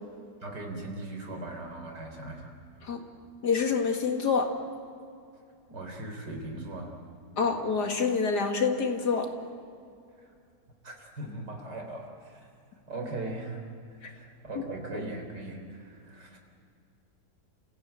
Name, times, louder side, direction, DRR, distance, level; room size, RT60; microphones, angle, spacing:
voice 1, 0.4-2.5 5.7-7.0 10.8-12.5 12.9-13.6 14.0-16.4, right 2 dB, 75° right, 2 dB, 4.2 m, -39 dB
voice 2, 3.4-4.5 7.4-9.3, left 5 dB, 70° left, 4 dB, 2.6 m, -26 dB
30.0 x 16.0 x 9.1 m, 2.4 s
omnidirectional pair, 1.8 m